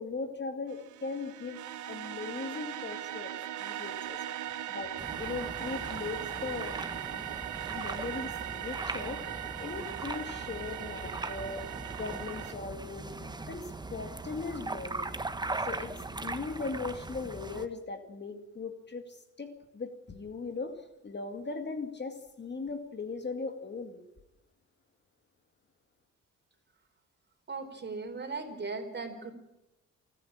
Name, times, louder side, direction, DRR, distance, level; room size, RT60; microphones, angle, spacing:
voice 1, 0.0-1.6 1.9-3.3 3.6-6.8 7.7-11.6 12.0-13.1 13.5-15.1 15.6-24.0, left 4 dB, 35° left, 7 dB, 2.2 m, -39 dB
sound 1, 0.7-12.5, right 11 dB, 80° right, 1.3 m, -39 dB
sound 2, 5.0-17.7, right 2 dB, 15° right, 1.3 m, -39 dB
voice 2, 27.5-29.3, right 4 dB, 35° right, 6 dB, 4.2 m, -38 dB
28.5 x 10.0 x 8.9 m, 0.93 s
cardioid pair, 90°, 30 cm